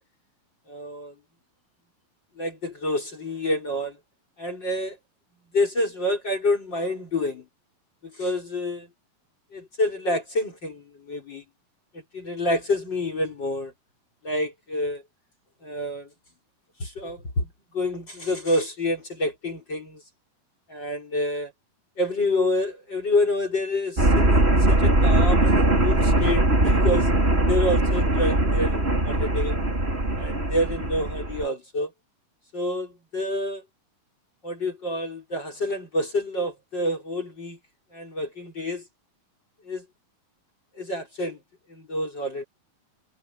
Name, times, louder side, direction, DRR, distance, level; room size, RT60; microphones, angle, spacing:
voice 1, 0.7-1.1 2.4-4.0 4.4-5.0 5.5-7.4 8.0-8.8 9.5-11.4 12.1-13.7 14.2-15.0 15.6-16.1 16.8-17.5 17.7-20.0 20.7-21.5 22.0-27.1 27.5-29.6 30.2-31.9 32.5-33.6 34.4-37.6 37.9-38.8 39.7-39.8 40.8-41.4 41.7-42.5, left 1 dB, 30° left, 4.9 m, -28 dB
sound 1, 24.0-31.4, right 1 dB, 15° right, 4.2 m, -21 dB
omnidirectional pair, 3.9 m